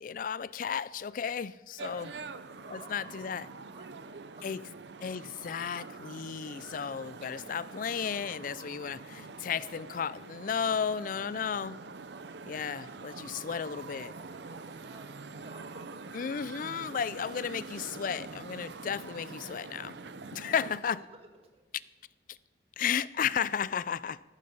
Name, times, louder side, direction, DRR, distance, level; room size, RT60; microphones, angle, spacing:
voice 1, 0.0-2.1 2.7-3.5 4.4-4.6 5.0-11.8 12.4-14.1 16.1-20.0 20.3-21.0 22.3-22.4 22.8-24.2, left 7 dB, 45° left, 0.3 m, -34 dB
voice 2, 1.7-4.7 13.2-15.9 20.3-20.6 20.9-21.6, right 2 dB, 30° right, 1.6 m, -57 dB
sound 1, 1.8-20.8, right 4 dB, 65° right, 0.7 m, -45 dB
14.0 x 14.0 x 5.4 m
head